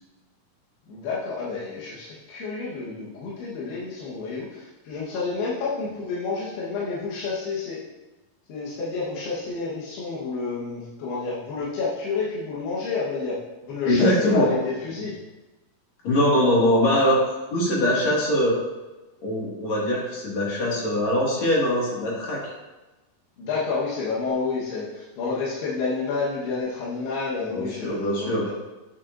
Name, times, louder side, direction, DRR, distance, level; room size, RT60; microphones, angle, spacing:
voice 1, 0.9-7.8 8.5-13.4 13.6-15.1 23.4-28.5, left 4 dB, 85° left, -7 dB, 3.5 m, -29 dB
voice 2, 13.8-14.5 16.0-17.2 17.5-18.6 19.2-22.5 27.5-28.4, left 1 dB, 50° left, -5 dB, 3.0 m, -22 dB
9.4 x 9.3 x 2.6 m, 1.1 s
omnidirectional pair, 4.5 m